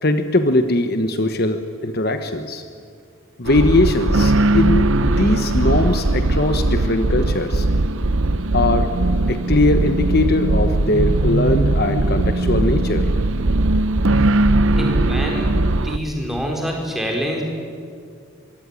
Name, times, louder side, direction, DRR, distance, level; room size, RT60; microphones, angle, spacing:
voice 1, 0.0-2.6 3.4-7.7 8.5-8.9 9.3-13.1, left 2 dB, 45° left, 8 dB, 1.2 m, -20 dB
sound 1, 3.5-16.0, right 2 dB, 65° right, 0.9 m, -19 dB
voice 2, 14.8-17.4, equal, ahead, 0 dB, 4.7 m, -26 dB
24.0 x 24.0 x 9.8 m, 2.2 s
head